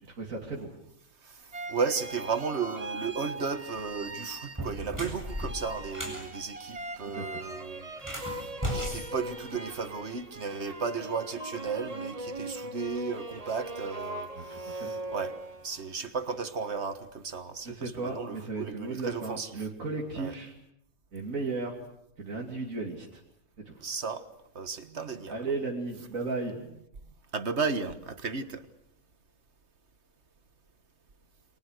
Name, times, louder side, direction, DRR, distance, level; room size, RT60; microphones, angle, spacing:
voice 1, 0.0-0.7 6.0-6.1 7.1-7.4 14.4-14.9 17.6-20.5 21.1-21.8 22.2-23.2 23.6-23.8 25.3-26.5, right 3 dB, 75° right, 3.3 m, -35 dB
voice 2, 1.2-15.4 15.6-19.7 20.2-20.3 23.8-24.3 24.6-25.4 27.3-28.7, right 5 dB, 55° right, 1.8 m, -34 dB
sound 1, 1.4-16.4, left 2 dB, 25° left, 6.7 m, -52 dB
sound 2, 1.5-4.9 5.3-15.9, right 2 dB, 30° right, 1.4 m, -40 dB
sound 3, 3.7-3.9 4.4-6.3 7.9-10.0, equal, 15° right, 7.6 m, -36 dB
29.5 x 25.0 x 6.6 m
omnidirectional pair, 1.4 m